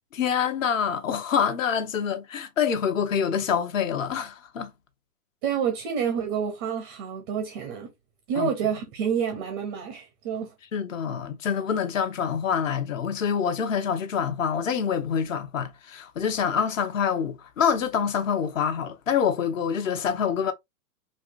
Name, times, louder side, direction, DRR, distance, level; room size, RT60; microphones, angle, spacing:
voice 1, 0.1-4.7 8.4-8.5 10.7-20.5, left 7 dB, 55° left, 0.9 m, -26 dB
voice 2, 5.4-7.9 8.3-10.5, right 7 dB, 15° right, 0.4 m, -28 dB
4.6 x 2.7 x 2.4 m
figure-of-eight pair, 115°, 46 cm